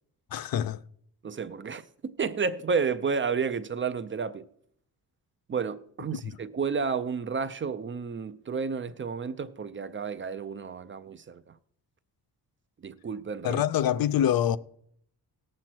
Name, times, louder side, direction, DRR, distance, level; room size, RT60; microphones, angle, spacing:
voice 1, 0.3-0.8 6.1-6.4 13.4-14.6, left 10 dB, 65° left, 0.5 m, -26 dB
voice 2, 1.2-4.4 5.5-11.4 12.8-13.6, right 5 dB, 30° right, 0.5 m, -31 dB
18.0 x 7.6 x 4.5 m
wide cardioid pair, 135°, 39 cm